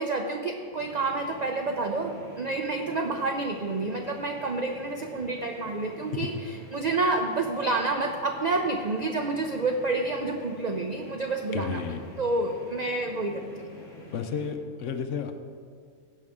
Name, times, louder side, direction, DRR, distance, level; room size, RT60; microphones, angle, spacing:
voice 1, 0.0-6.3 6.7-11.8 12.2-13.7, right 3 dB, 65° right, 3 dB, 0.4 m, -29 dB
sound 1, 0.7-14.5, left 2 dB, 50° left, 1.7 m, -47 dB
voice 2, 11.5-12.0 14.1-15.3, left 7 dB, 65° left, 7 dB, 0.9 m, -32 dB
16.5 x 5.4 x 3.6 m, 2.1 s
omnidirectional pair, 1.5 m